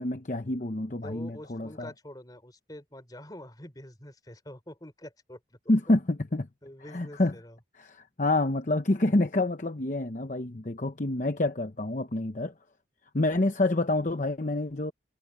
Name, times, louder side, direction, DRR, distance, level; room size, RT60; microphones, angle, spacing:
voice 1, 0.0-1.9 5.7-6.5 6.9-7.3 7.8-12.5 13.1-14.9, left 2 dB, 40° left, 0.9 m, -27 dB
voice 2, 0.9-5.6 6.6-7.6 11.1-11.2, left 1 dB, 20° left, 3.8 m, -46 dB
head